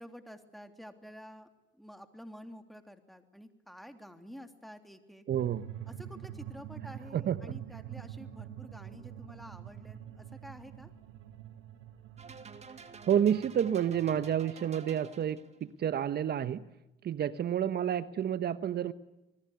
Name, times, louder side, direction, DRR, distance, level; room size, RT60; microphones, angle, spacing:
voice 1, 0.0-1.5 1.8-5.2 5.9-10.9, equal, ahead, 7 dB, 3.3 m, -50 dB
voice 2, 5.3-5.6 7.1-7.5 13.1-15.4 15.8-16.7 17.0-18.9, right 9 dB, 50° right, 14 dB, 1.1 m, -29 dB
sound 1, 5.3-14.5, right 10 dB, 75° right, 3.9 m, -46 dB
sound 2, 12.2-15.7, right 5 dB, 30° right, 2.6 m, -50 dB
27.0 x 20.5 x 8.2 m, 0.95 s
cardioid pair, 90°, 21 cm